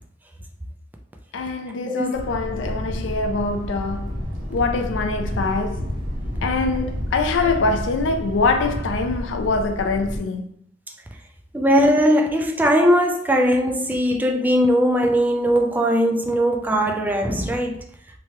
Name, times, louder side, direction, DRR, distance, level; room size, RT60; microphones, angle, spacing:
voice 1, 1.3-4.2 4.5-5.9 6.4-10.5, left 3 dB, 80° left, 0.4 m, -24 dB
Thunder, 2.1-10.2, equal, 75° right, 0.9 m, -30 dB
voice 2, 11.5-17.8, equal, 10° right, 0.3 m, -19 dB
3.1 x 2.2 x 2.8 m
head